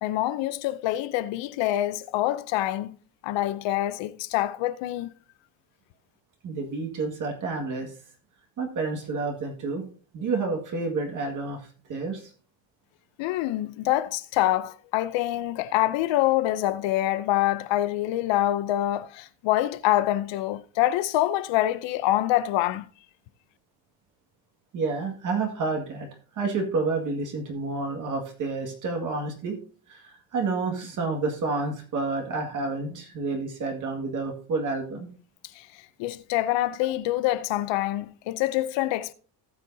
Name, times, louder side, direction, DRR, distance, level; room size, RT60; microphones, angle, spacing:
voice 1, 0.0-2.9 3.2-5.1 13.2-22.8 35.6-35.7 36.0-39.1, left 14 dB, 70° left, 0.7 m, -25 dB
voice 2, 6.4-7.9 8.6-9.8 10.1-11.6 11.9-12.3 24.7-26.1 26.3-29.6 29.9-35.1, right 3 dB, 40° right, 2.0 m, -29 dB
18.5 x 6.5 x 2.7 m
cardioid pair, 170°, 45 cm